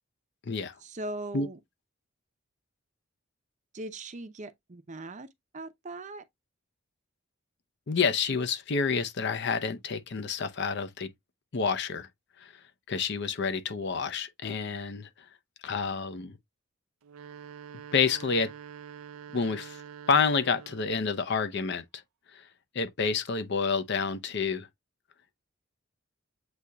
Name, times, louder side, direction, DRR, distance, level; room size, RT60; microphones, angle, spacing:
voice 1, 0.8-1.6 3.7-5.3 5.5-6.2, right 2 dB, 35° right, 0.6 m, -39 dB
voice 2, 7.9-11.1 11.5-12.1 12.4-12.6 12.9-15.1 15.6-16.4 17.9-18.5 19.3-19.8 20.1-21.8 22.3-22.4 22.7-24.7, left 5 dB, 55° left, 0.6 m, -28 dB
sound 1, 17.0-21.0, right 7 dB, 85° right, 0.4 m, -46 dB
7.9 x 2.8 x 2.3 m
head